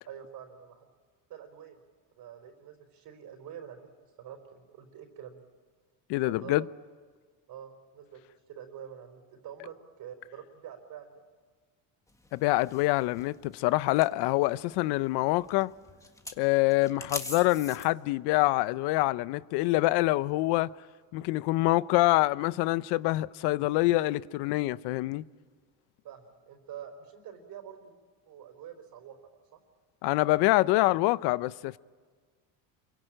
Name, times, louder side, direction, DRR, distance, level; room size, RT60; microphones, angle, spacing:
voice 1, 0.1-0.9 1.3-1.8 2.2-3.9 4.2-5.4 6.2-6.7 7.5-8.2 8.5-11.2 16.6-16.7 26.0-27.9 28.3-29.6, right 9 dB, 55° right, 4.2 m, -46 dB
voice 2, 6.1-6.6 12.3-15.7 16.4-20.7 21.1-25.2 30.0-31.8, left 19 dB, 75° left, 0.7 m, -26 dB
sound 1, 12.1-17.9, left 2 dB, 5° left, 1.7 m, -44 dB
27.5 x 23.5 x 9.0 m
cardioid pair, 130°, 41 cm